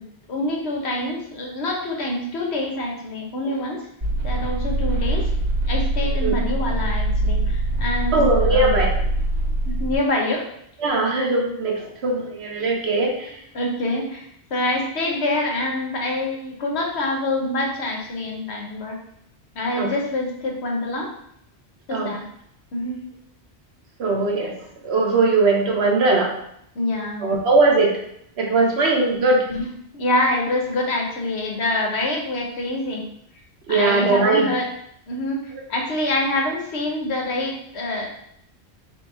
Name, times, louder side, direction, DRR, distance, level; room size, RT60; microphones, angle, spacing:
voice 1, 0.3-3.8 4.2-5.3 5.6-8.7 9.7-10.5 13.5-19.0 19.5-21.1 21.9-22.2 22.7-23.0 26.7-27.3 29.5-33.0 33.7-34.7 35.1-38.1, left 1 dB, 90° left, 0 dB, 1.2 m, -26 dB
sound 1, 4.0-10.0, right 1 dB, 40° right, 1.5 m, -23 dB
voice 2, 8.1-8.9 10.8-13.4 19.8-19.9 21.9-22.1 24.0-24.5 24.8-26.3 27.2-28.0 28.4-29.5 33.7-34.5, right 3 dB, 80° right, 0 dB, 1.2 m, -20 dB
3.4 x 3.1 x 4.6 m, 0.73 s
omnidirectional pair, 1.1 m